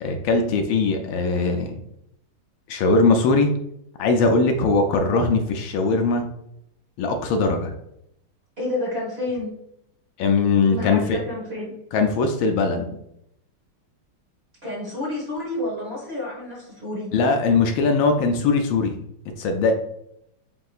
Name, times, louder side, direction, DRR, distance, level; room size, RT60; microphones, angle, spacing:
voice 1, 0.0-1.8 2.7-3.5 4.0-6.3 7.0-7.7 10.2-11.2 11.9-12.9 17.1-19.0 19.4-19.7, left 3 dB, 75° left, 5 dB, 1.3 m, -20 dB
voice 2, 8.6-9.5 10.7-11.8 14.6-17.1, left 1 dB, 35° right, -4 dB, 1.3 m, -30 dB
7.6 x 2.8 x 2.4 m, 0.79 s
omnidirectional pair, 2.3 m